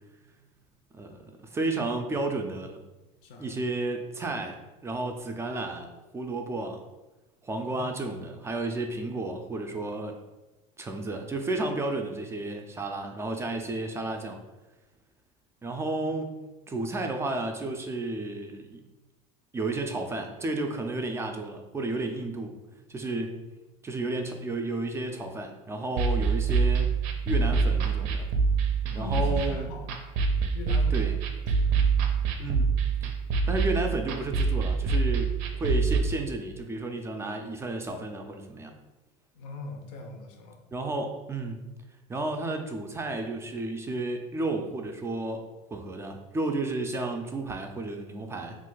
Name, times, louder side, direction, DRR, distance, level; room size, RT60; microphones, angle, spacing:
voice 1, 1.0-2.8 3.4-6.8 7.4-10.2 10.8-14.4 15.6-16.3 16.7-18.8 19.5-22.6 22.9-23.4 23.8-27.0 27.3-28.3 29.0-29.7 30.9-31.2 32.4-32.7 33.0-33.1 33.5-38.7 40.7-41.6 42.1-45.5 45.7-48.6, right 2 dB, 15° right, 4 dB, 0.3 m, -32 dB
voice 2, 3.2-3.6 7.7-7.9 28.9-30.1 30.5-31.1 31.5-31.7 39.3-40.6, left 3 dB, 85° left, 3 dB, 0.6 m, -41 dB
sound 1, 26.0-36.0, right 4 dB, 75° right, 0.5 m, -25 dB
2.5 x 2.2 x 3.8 m, 1.1 s
supercardioid pair, 115°, 16 cm